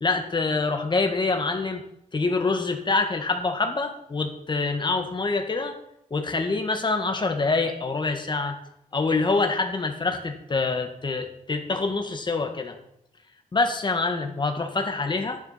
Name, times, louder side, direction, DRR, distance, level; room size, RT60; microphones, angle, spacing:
voice 1, 0.0-1.8 2.1-5.8 6.1-8.6 8.9-12.8 13.5-15.4, left 3 dB, 35° left, 5 dB, 1.8 m, -25 dB
13.0 x 11.0 x 5.8 m, 0.77 s
wide cardioid pair, 165°, 14 cm